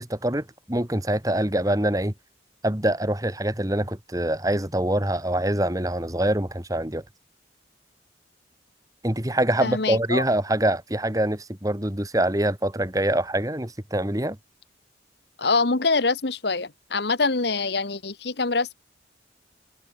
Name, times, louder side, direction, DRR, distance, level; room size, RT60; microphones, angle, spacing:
voice 1, 0.0-2.1 2.6-7.0 9.0-14.4, right 1 dB, 20° right, 1.8 m, -25 dB
voice 2, 9.6-10.2 15.4-18.7, left 3 dB, 60° left, 1.3 m, -24 dB
head